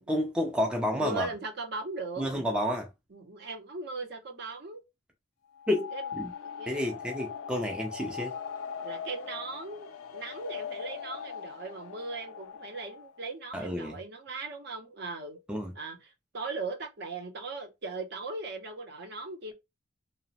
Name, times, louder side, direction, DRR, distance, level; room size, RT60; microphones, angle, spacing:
voice 1, 0.0-1.3 2.2-2.9 5.7-6.3 6.7-8.4 13.5-14.0 15.5-15.7, left 1 dB, 5° right, 0.3 m, -30 dB
voice 2, 1.0-2.2 3.1-4.8 5.9-6.0 6.4-7.0 8.8-15.4 15.7-19.5, right 3 dB, 55° right, 0.6 m, -39 dB
sound 1, 5.5-13.2, left 7 dB, 90° left, 0.4 m, -40 dB
3.0 x 2.0 x 2.7 m
head